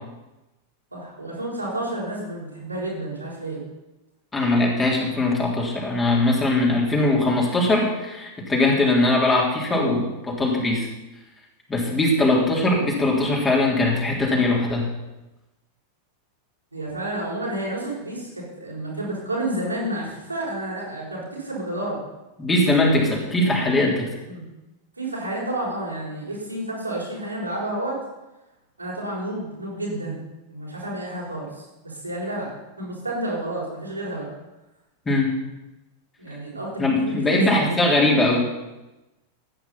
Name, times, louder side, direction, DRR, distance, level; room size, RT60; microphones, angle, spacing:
voice 1, 0.9-3.6 16.7-22.0 24.3-24.4 25.0-28.0 28.8-30.2 30.5-34.3 36.2-38.0, right 1 dB, 85° right, -4 dB, 5.6 m, -30 dB
voice 2, 4.3-10.9 11.7-14.9 22.4-24.1 35.1-35.3 36.8-38.4, left 2 dB, 15° left, -2 dB, 3.5 m, -21 dB
14.0 x 9.5 x 5.8 m, 1.0 s
figure-of-eight pair, 90°, 0 cm